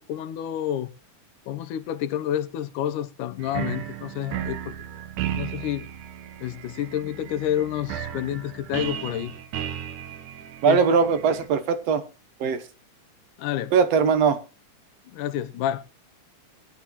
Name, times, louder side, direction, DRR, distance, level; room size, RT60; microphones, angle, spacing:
voice 1, 0.1-0.9 1.5-4.7 5.2-5.9 6.4-9.3 10.7-10.8 13.4-13.7 15.1-15.8, left 11 dB, 85° left, 2.4 m, -29 dB
sound 1, 3.4-11.5, right 10 dB, 85° right, 2.6 m, -35 dB
voice 2, 10.6-12.0 12.4-12.6 13.7-14.4, right 6 dB, 65° right, 1.9 m, -20 dB
20.5 x 10.5 x 3.0 m
omnidirectional pair, 3.5 m